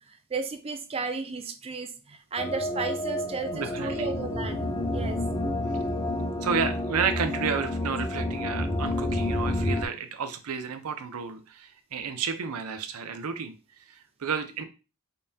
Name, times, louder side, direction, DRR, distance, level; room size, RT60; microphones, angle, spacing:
voice 1, 0.0-4.6 4.9-5.2, right 4 dB, 25° right, 7 dB, 0.4 m, -34 dB
sound 1, 2.4-9.9, left 1 dB, 20° left, 0.6 m, -29 dB
voice 2, 3.5-4.1 6.4-13.5 13.9-14.6, right 6 dB, 90° right, 8 dB, 0.6 m, -31 dB
5.2 x 2.2 x 2.7 m, 0.31 s
head